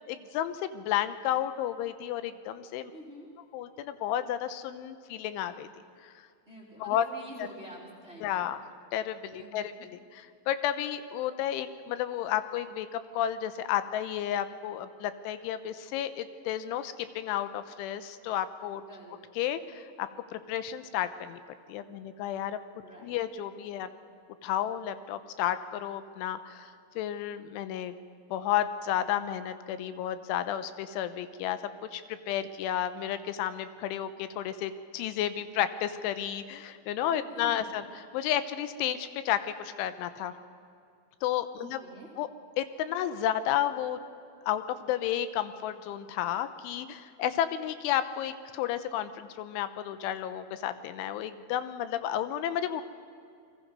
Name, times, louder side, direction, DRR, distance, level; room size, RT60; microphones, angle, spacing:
voice 1, 0.1-2.9 3.5-5.7 6.0-6.1 6.8-7.0 7.4-7.5 8.2-8.6 8.9-18.8 19.4-21.4 21.7-22.6 23.0-23.9 24.4-27.9 28.3-31.6 31.9-40.3 41.2-41.8 42.2-42.3 42.6-44.0 44.5-52.8, left 11 dB, 85° left, 11 dB, 3.2 m, -32 dB
voice 2, 2.9-3.3 6.5-8.5 9.3-9.9 18.9-19.2 22.8-23.1 37.1-37.8 41.6-42.1, right 1 dB, 15° right, -3 dB, 2.6 m, -47 dB
29.5 x 22.0 x 5.4 m, 2.4 s
omnidirectional pair, 5.5 m